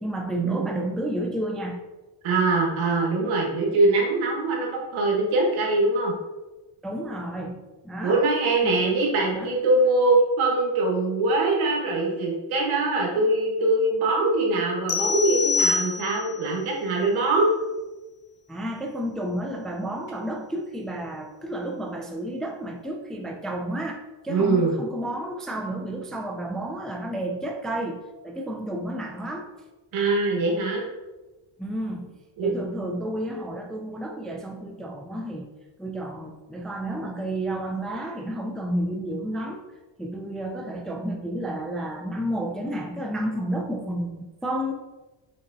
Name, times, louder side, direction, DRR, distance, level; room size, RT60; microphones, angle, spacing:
voice 1, 0.0-1.8 6.8-8.2 8.6-9.0 9.3-9.6 18.5-29.5 31.6-35.5 35.8-39.6 40.0-44.7, right 1 dB, ahead, 2 dB, 0.4 m, -31 dB
voice 2, 2.2-6.1 8.0-17.5 24.3-24.7 29.9-30.8 32.4-32.5, right 2 dB, 75° right, -1 dB, 1.4 m, -23 dB
sound 1, 14.9-16.4, left 4 dB, 45° left, 0.7 m, -25 dB
4.4 x 4.1 x 2.6 m, 1.1 s
cardioid pair, 80°, 49 cm